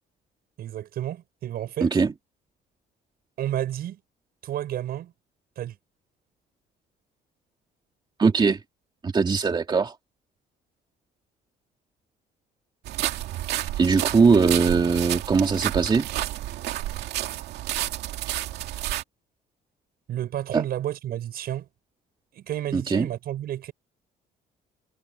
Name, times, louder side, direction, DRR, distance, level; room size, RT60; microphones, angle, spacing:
voice 1, 0.6-2.0 3.4-4.0 4.4-5.1 5.6-5.8 20.1-21.7 22.3-23.7, right 12 dB, 65° right, 7.6 m, -31 dB
voice 2, 1.8-2.1 8.2-8.6 9.0-9.9 13.8-16.1 20.5-20.6 22.7-23.1, right 5 dB, 25° right, 2.5 m, -20 dB
sound 1, 12.9-19.0, right 14 dB, 80° right, 2.2 m, -30 dB
cardioid pair, 110°, 17 cm